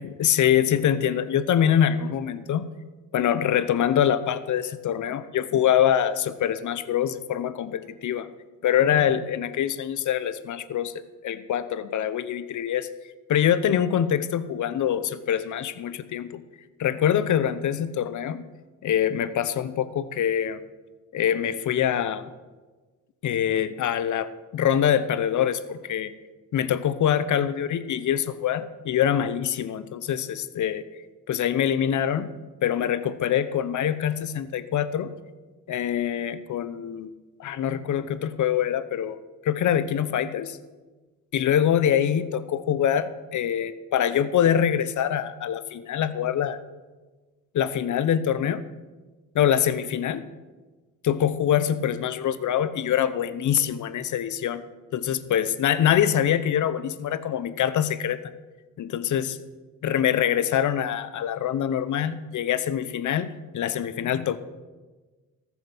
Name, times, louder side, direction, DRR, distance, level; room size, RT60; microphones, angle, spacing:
voice 1, 0.0-2.7 3.1-8.3 8.6-10.9 11.2-12.9 13.3-16.4 16.8-18.4 18.8-20.6 21.1-22.2 23.2-26.1 26.5-30.8 31.3-32.3 32.6-35.1 35.7-37.1 37.4-39.2 39.4-40.6 41.3-46.6 47.5-48.6 49.3-50.3 51.0-54.6 54.9-58.2 58.8-59.4 59.8-64.4, left 9 dB, 60° left, 14 dB, 0.8 m, -24 dB
14.0 x 7.3 x 6.0 m, 1.3 s
cardioid pair, 75°, 33 cm